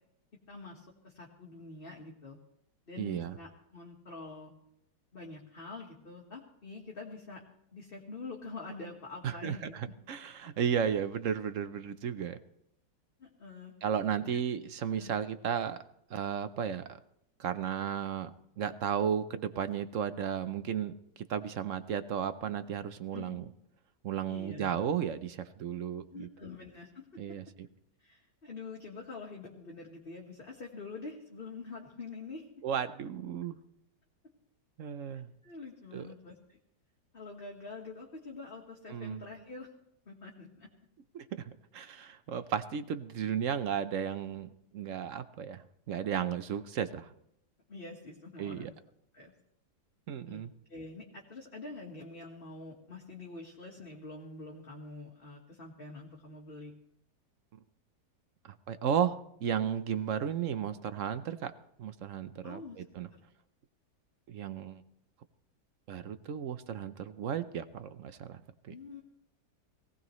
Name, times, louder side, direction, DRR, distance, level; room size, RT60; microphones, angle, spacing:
voice 1, 0.5-2.4 2.9-4.5 5.1-7.4 7.7-9.7 13.2-13.7 14.1-14.2 15.0-15.1 23.1-23.4 24.3-24.7 26.1-27.4 28.0-32.5 35.4-36.6 37.1-39.7 40.1-40.7 47.7-48.7 49.1-49.3 50.3-50.4 50.7-56.7 62.4-62.8 63.1-63.2 68.7-69.0, left 3 dB, 35° left, -1 dB, 1.6 m, -46 dB
voice 2, 3.0-3.4 9.2-12.4 13.8-15.8 16.1-17.0 17.4-18.3 18.6-23.5 24.0-26.3 27.2-27.4 32.6-33.6 34.8-35.3 35.9-36.1 38.9-39.2 41.1-41.4 41.7-47.1 48.4-48.7 50.1-50.5 58.4-61.5 61.8-63.1 64.3-64.8 65.9-68.7, right 8 dB, 60° right, 12 dB, 0.9 m, -34 dB
18.5 x 16.5 x 3.1 m, 0.74 s
omnidirectional pair, 1.8 m